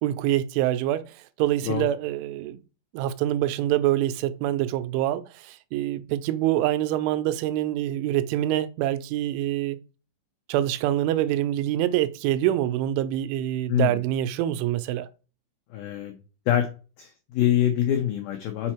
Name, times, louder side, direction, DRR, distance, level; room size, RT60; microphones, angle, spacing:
voice 1, 0.0-1.1 1.4-2.6 2.9-9.8 10.5-15.1, right 13 dB, 90° right, 3.0 m, -25 dB
voice 2, 15.7-16.2 16.5-16.7 17.0-18.7, left 11 dB, 85° left, 2.0 m, -24 dB
6.8 x 4.5 x 4.4 m
omnidirectional pair, 5.3 m